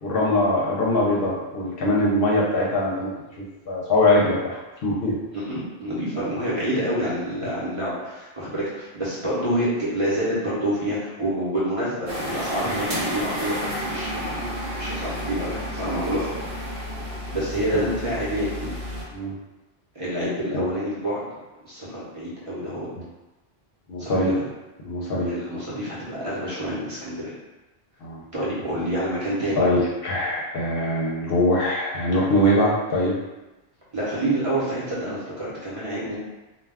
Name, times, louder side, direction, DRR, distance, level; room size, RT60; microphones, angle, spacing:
voice 1, 0.0-3.1 3.4-5.1 17.7-17.8 19.1-19.3 20.5-20.7 23.9-24.4 24.8-25.3 28.0-28.2 29.6-33.2, left 1 dB, 65° left, -4 dB, 0.8 m, -22 dB
voice 2, 5.3-14.4 14.8-16.3 17.3-18.7 19.9-21.2 21.6-22.9 24.0-24.4 25.2-27.3 28.3-29.7 33.9-36.2, right 1 dB, 35° right, -9 dB, 0.7 m, -27 dB
sound 1, 12.1-19.0, equal, 60° right, 1.1 m, -31 dB
2.2 x 2.2 x 3.3 m, 1.1 s
omnidirectional pair, 1.1 m